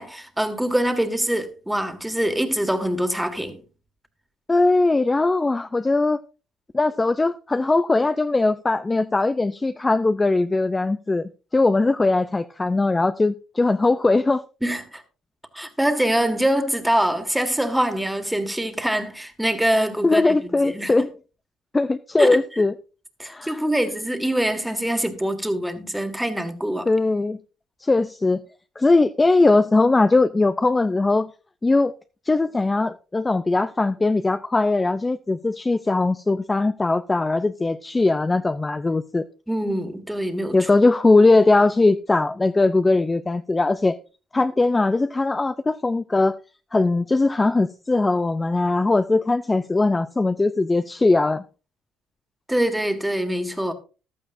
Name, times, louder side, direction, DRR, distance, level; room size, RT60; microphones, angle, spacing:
voice 1, 0.0-3.6 14.6-15.0 15.5-21.1 22.2-22.4 23.2-26.9 39.5-40.7 52.5-53.7, right 1 dB, 5° right, 1.8 m, -24 dB
voice 2, 4.5-6.2 6.7-14.4 20.0-21.1 21.7-22.7 23.3-23.6 26.9-27.4 27.8-28.4 28.8-31.3 31.6-31.9 32.3-39.2 40.5-44.0 44.3-46.4 46.7-51.4, left 3 dB, 15° left, 0.5 m, -20 dB
15.0 x 12.0 x 2.6 m
cardioid pair, 105°, 0 cm